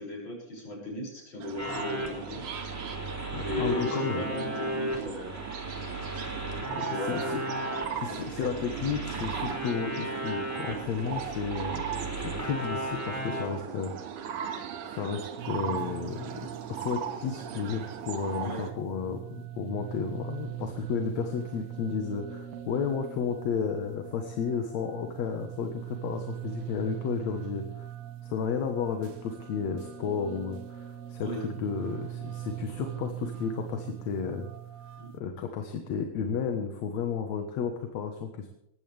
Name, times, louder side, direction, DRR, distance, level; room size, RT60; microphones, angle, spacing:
voice 1, 0.0-2.4 3.4-5.3 6.8-7.3 8.1-8.5 11.9-12.0 18.4-18.6 31.2-31.4 35.0-35.1, left 2 dB, 40° left, -1 dB, 7.5 m, -36 dB
sound 1, 1.4-18.7, right 9 dB, 90° right, 2.9 m, -38 dB
sound 2, 1.6-13.4, equal, 5° right, 4.0 m, -35 dB
voice 2, 3.3-4.3 6.8-7.4 7.9-13.9 14.4-14.5 14.8-27.9 28.2-34.5 35.1-38.5, left 6 dB, 65° left, 5 dB, 2.6 m, -33 dB
sound 3, 15.4-35.2, right 11 dB, 65° right, 2.4 m, -41 dB
20.0 x 15.0 x 3.5 m, 0.79 s
omnidirectional pair, 3.4 m